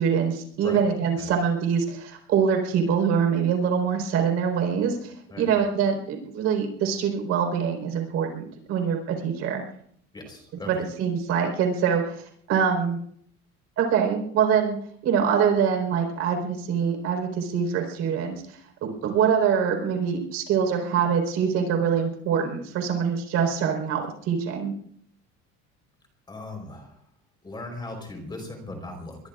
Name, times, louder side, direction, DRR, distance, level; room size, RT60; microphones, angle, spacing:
voice 1, 0.0-9.6 10.6-12.2 12.5-13.0 13.8-14.8 15.0-24.7, right 7 dB, 55° right, 3 dB, 4.4 m, -24 dB
voice 2, 10.1-10.7 26.3-26.9 27.4-29.2, left 2 dB, 15° left, 3 dB, 4.2 m, -38 dB
23.5 x 23.0 x 2.5 m, 0.65 s
cardioid pair, 175°, 30 cm